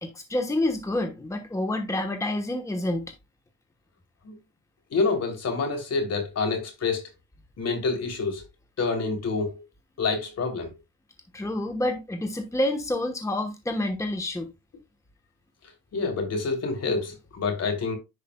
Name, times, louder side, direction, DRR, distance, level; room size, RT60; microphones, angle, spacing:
voice 1, 0.0-3.1 11.3-14.5, left 1 dB, 10° left, 1.1 m, -28 dB
voice 2, 4.9-7.1 7.6-8.4 8.8-9.6 10.0-10.7 15.9-17.9, left 4 dB, 55° left, 3.1 m, -27 dB
10.5 x 5.1 x 2.3 m
cardioid pair, 90°, 30 cm